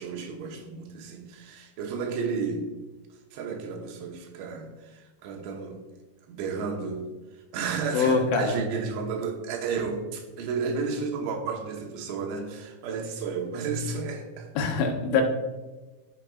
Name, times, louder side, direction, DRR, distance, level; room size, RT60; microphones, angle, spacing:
voice 1, 0.0-2.7 3.3-5.8 6.3-7.1 7.5-14.5, right 5 dB, 85° right, 2 dB, 3.4 m, -32 dB
voice 2, 7.9-8.6 14.6-15.2, left 5 dB, 85° left, 3 dB, 3.4 m, -24 dB
15.5 x 6.7 x 2.4 m, 1.2 s
omnidirectional pair, 5.2 m